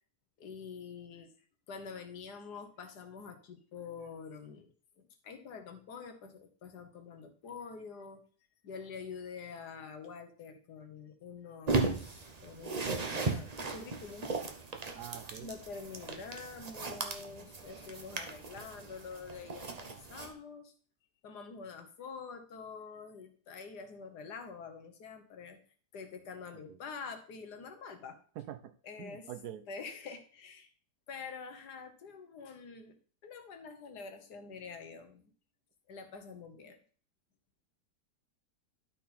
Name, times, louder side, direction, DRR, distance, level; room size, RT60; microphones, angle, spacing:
voice 1, 0.4-1.3 1.7-8.2 8.6-14.3 15.4-20.7 21.2-25.6 25.9-28.2 28.8-29.3 29.7-30.7 31.1-33.0 33.2-35.3 35.9-36.8, left 5 dB, 75° left, 7 dB, 1.6 m, -46 dB
sound 1, 11.7-20.3, right 3 dB, 35° right, 0.7 m, -37 dB
voice 2, 14.9-15.5 28.4-28.7 29.0-29.6, right 11 dB, 75° right, 11 dB, 1.2 m, -44 dB
12.0 x 4.2 x 4.2 m, 0.44 s
omnidirectional pair, 1.8 m